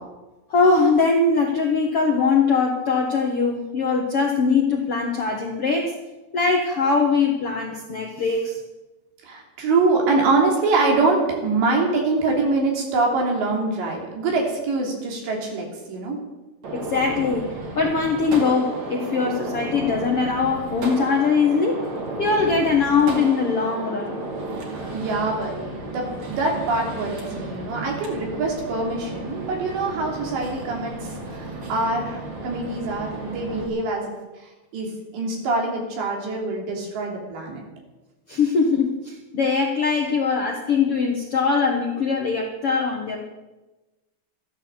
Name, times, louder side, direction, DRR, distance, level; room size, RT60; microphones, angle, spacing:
voice 1, 0.5-5.9 6.3-8.6 16.7-21.8 22.2-24.2 38.3-43.3, left 4 dB, 65° left, 1 dB, 1.4 m, -21 dB
voice 2, 9.2-16.2 24.9-34.0 34.7-37.6, right 3 dB, 85° right, 0 dB, 5.4 m, -24 dB
Gunshot gunfire, 16.6-33.7, right 2 dB, 45° right, 3.3 m, -33 dB
13.5 x 12.5 x 7.3 m, 1.1 s
omnidirectional pair, 4.9 m